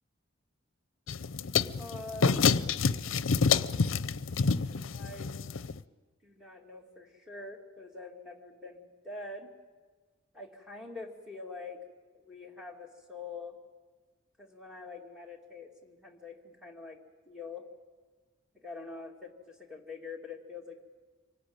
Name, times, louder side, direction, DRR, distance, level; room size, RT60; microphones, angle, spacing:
sound 1, 1.1-5.8, left 5 dB, 75° left, 0.6 m, -28 dB
voice 1, 1.7-2.4 4.9-5.4 6.2-9.5 10.4-11.8 12.1-13.6 14.4-17.7 18.5-20.8, left 3 dB, 5° right, 0 dB, 2.6 m, -45 dB
25.5 x 18.5 x 8.9 m, 1.4 s
head